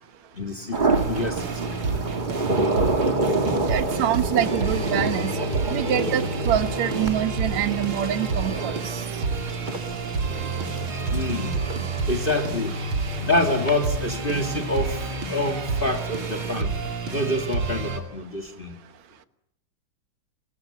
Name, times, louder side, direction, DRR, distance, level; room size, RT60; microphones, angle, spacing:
voice 1, 0.3-1.8 11.1-11.6 12.1-12.8 13.2-16.7 17.1-18.8, left 1 dB, 25° left, 8 dB, 1.3 m, -27 dB
sound 1, 0.7-16.6, right 2 dB, 20° right, 1.2 m, -29 dB
sound 2, 0.9-18.0, right 3 dB, 40° right, 3.1 m, -29 dB
voice 2, 3.7-5.3 5.7-8.7, right 11 dB, 65° right, 11 dB, 2.2 m, -25 dB
27.0 x 22.0 x 8.4 m, 0.78 s
omnidirectional pair, 3.7 m